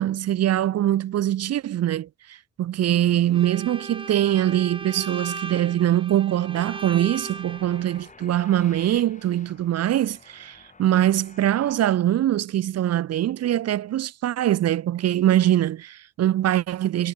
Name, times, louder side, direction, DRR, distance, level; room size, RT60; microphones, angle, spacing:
voice 1, 0.0-17.1, right 12 dB, 55° right, 0.7 m, -23 dB
Bowed string instrument, 3.3-8.0, right 4 dB, 15° right, 0.7 m, -37 dB
sound 1, 6.6-11.8, left 4 dB, 25° left, 2.6 m, -50 dB
cardioid pair, 90°, 30 cm